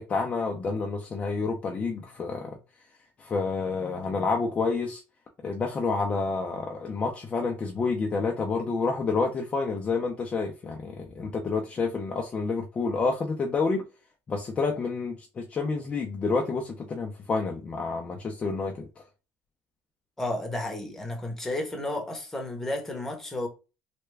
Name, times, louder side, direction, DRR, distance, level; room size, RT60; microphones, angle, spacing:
voice 1, 0.0-2.6 3.2-5.0 5.4-13.8 14.3-18.9, left 4 dB, 25° left, 0.5 m, -29 dB
voice 2, 20.2-23.5, left 1 dB, 5° left, 0.8 m, -32 dB
3.3 x 2.2 x 3.2 m
cardioid pair, 145°, 6 cm